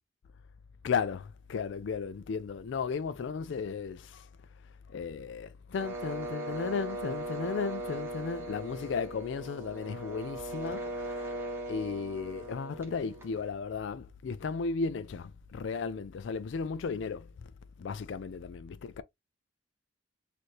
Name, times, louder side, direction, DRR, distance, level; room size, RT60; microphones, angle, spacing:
voice 1, 0.8-4.3 4.9-11.4 11.7-17.3 17.8-19.0, left 5 dB, 65° left, 0.3 m, -35 dB
sound 1, 5.7-13.5, right 1 dB, 10° right, 1.1 m, -39 dB
4.3 x 2.6 x 3.1 m
head